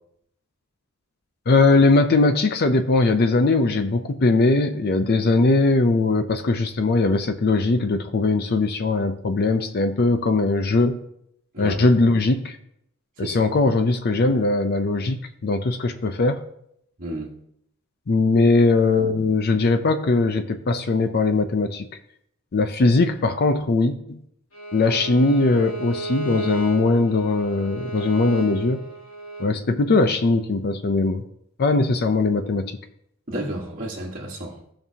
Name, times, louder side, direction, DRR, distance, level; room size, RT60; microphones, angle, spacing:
voice 1, 1.5-11.0 11.6-12.6 13.2-16.4 18.1-21.9 22.5-24.2 24.7-28.8 29.4-31.2 31.6-32.8, left 3 dB, 50° left, 8 dB, 0.5 m, -20 dB
voice 2, 17.0-17.3 33.3-34.6, right 1 dB, 40° right, -6 dB, 1.4 m, -31 dB
Bowed string instrument, 24.5-29.5, right 3 dB, 70° left, 2.4 m, -33 dB
15.0 x 5.3 x 2.8 m, 0.73 s
head